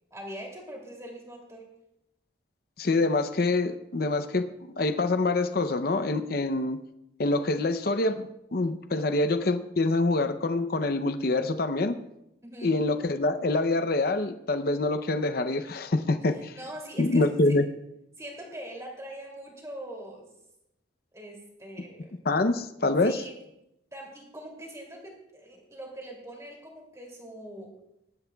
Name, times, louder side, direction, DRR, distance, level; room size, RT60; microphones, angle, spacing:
voice 1, 0.1-1.7 12.4-12.7 16.3-17.6 18.2-20.3 21.1-22.1 23.0-23.4 23.9-27.7, right 1 dB, 15° right, 0 dB, 2.7 m, -42 dB
voice 2, 2.8-4.5 4.8-6.8 7.2-12.0 12.6-16.5 17.0-17.6 22.3-23.2, left 2 dB, 50° left, 10 dB, 0.6 m, -26 dB
20.5 x 12.0 x 2.3 m, 0.83 s
head